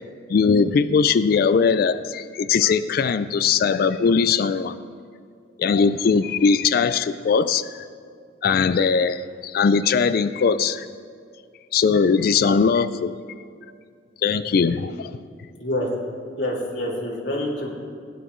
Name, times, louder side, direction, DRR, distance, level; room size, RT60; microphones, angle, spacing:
voice 1, 0.3-4.7 5.6-7.8 8.4-10.9 11.7-13.1 14.2-15.1, left 5 dB, 55° left, 13 dB, 0.3 m, -20 dB
voice 2, 15.6-15.9 16.4-17.7, left 1 dB, 80° left, -4 dB, 2.4 m, -26 dB
16.5 x 10.0 x 3.1 m, 2.2 s
head